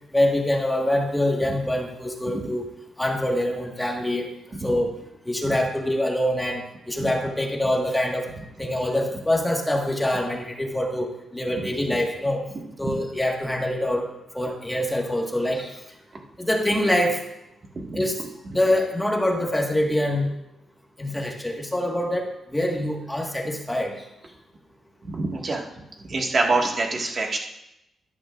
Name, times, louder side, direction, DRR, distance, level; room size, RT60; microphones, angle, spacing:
voice 1, 0.1-2.6 3.0-4.3 4.6-4.9 5.2-8.3 8.6-12.4 12.8-14.1 14.3-15.7 16.4-17.2 17.9-18.2 18.5-20.3 21.0-24.0 26.4-26.5, left 1 dB, 5° left, 0 dB, 1.6 m, -25 dB
voice 2, 25.0-25.7 26.1-27.4, right 3 dB, 40° right, 1 dB, 1.8 m, -25 dB
13.0 x 12.0 x 2.5 m, 0.86 s
cardioid pair, 120°, 0 cm